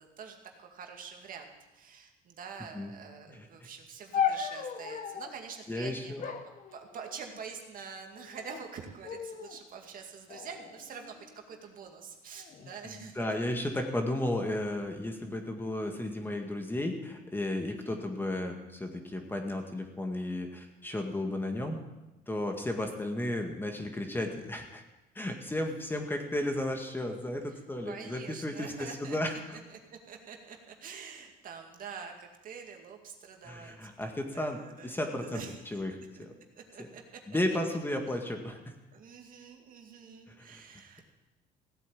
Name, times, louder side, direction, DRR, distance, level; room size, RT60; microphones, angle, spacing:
voice 1, 0.0-6.3 6.7-13.4 17.7-18.0 27.4-36.3 36.6-37.4 38.9-41.1, right 6 dB, 55° right, 3 dB, 2.2 m, -46 dB
sound 1, 4.1-5.4 6.2-7.4 8.2-8.7 9.0-9.6 10.3-11.6 12.4-12.8, left 7 dB, 45° left, 1.5 m, -36 dB
voice 2, 5.7-6.2 12.8-21.8 22.3-24.8 25.2-29.6 33.4-36.3 36.8-36.9 37.3-38.7 40.3-40.6, left 1 dB, 10° left, 4 dB, 2.0 m, -34 dB
16.5 x 8.4 x 8.6 m, 1.0 s
cardioid pair, 110°, 17 cm